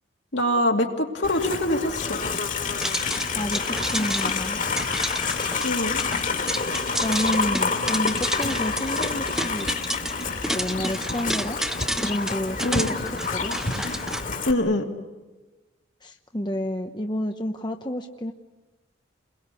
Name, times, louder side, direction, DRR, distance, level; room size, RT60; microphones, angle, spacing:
voice 1, 0.3-2.2 5.6-6.0 12.6-13.0 14.5-14.9, left 1 dB, 65° left, 2 dB, 2.6 m, -24 dB
Livestock farm animals working animals, 1.2-14.5, left 4 dB, 45° left, 2.5 m, -28 dB
sound 1, 2.8-14.2, right 1 dB, 5° right, 0.8 m, -31 dB
voice 2, 3.3-4.6 7.0-9.7 10.4-11.6 11.9-13.5 16.0-18.3, left 1 dB, 25° left, 4 dB, 0.9 m, -30 dB
30.0 x 22.0 x 8.4 m, 1.2 s
head